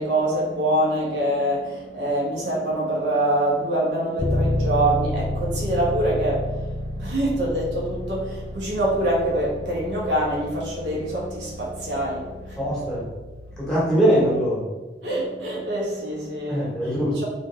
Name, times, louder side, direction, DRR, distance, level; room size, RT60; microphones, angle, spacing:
voice 1, 0.0-12.6 15.0-17.2, right 1 dB, 85° right, -4 dB, 1.3 m, -25 dB
Bass guitar, 4.2-14.0, left 1 dB, 35° left, 0.4 m, -31 dB
voice 2, 12.6-13.0 13.6-14.6 16.5-17.2, equal, 5° left, -8 dB, 1.5 m, -21 dB
4.1 x 3.6 x 3.3 m, 1.2 s
head